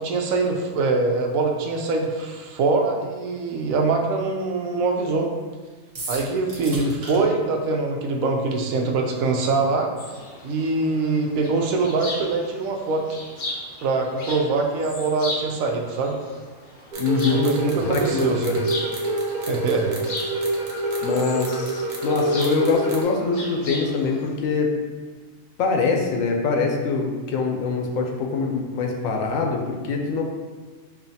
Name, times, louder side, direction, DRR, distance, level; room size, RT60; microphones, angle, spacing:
voice 1, 0.0-5.3 6.1-9.9 10.4-13.0 13.8-16.2 17.4-18.6 19.5-20.0, right 3 dB, 85° right, 2 dB, 1.0 m, -23 dB
sound 1, 5.9-7.2, right 2 dB, 65° right, 1.4 m, -34 dB
sound 2, 10.0-24.3, left 1 dB, 50° left, 0.6 m, -37 dB
sound 3, 16.9-23.0, right 2 dB, 50° right, 0.6 m, -27 dB
voice 2, 17.0-17.5 17.8-18.7 21.0-24.7 25.6-30.2, left 4 dB, 75° left, 2 dB, 1.0 m, -24 dB
5.4 x 2.5 x 2.7 m, 1.4 s
omnidirectional pair, 1.4 m